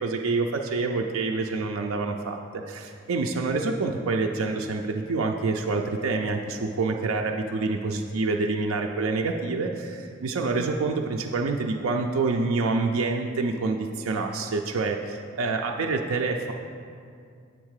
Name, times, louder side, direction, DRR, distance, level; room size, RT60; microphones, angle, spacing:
voice 1, 0.0-16.5, right 3 dB, 75° right, 2 dB, 0.4 m, -27 dB
7.9 x 3.6 x 6.4 m, 2.3 s
head